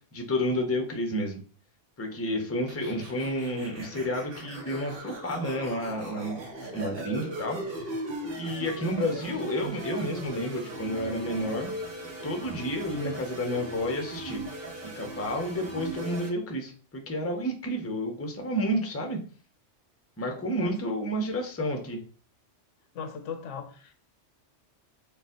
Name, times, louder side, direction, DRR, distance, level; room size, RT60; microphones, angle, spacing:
voice 1, 0.1-1.4 2.0-6.4 6.7-7.6 8.4-11.7 12.2-14.4 15.0-19.2 20.2-22.0, equal, 15° left, 0.6 m, -30 dB
sound 1, 2.7-16.3, right 1 dB, 55° right, 1.2 m, -39 dB
voice 2, 22.9-23.9, left 6 dB, 85° left, 1.0 m, -38 dB
4.3 x 2.4 x 3.8 m
omnidirectional pair, 1.2 m